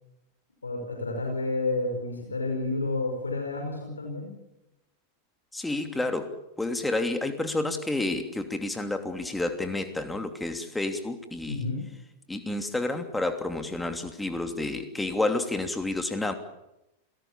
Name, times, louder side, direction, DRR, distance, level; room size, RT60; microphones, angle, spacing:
voice 1, 0.6-4.3 11.5-11.8, left 2 dB, 75° left, 2 dB, 5.3 m, -30 dB
voice 2, 5.5-11.6 12.3-16.3, left 2 dB, 5° left, 6 dB, 2.9 m, -30 dB
29.0 x 18.0 x 7.3 m, 0.90 s
figure-of-eight pair, 90°, 0 cm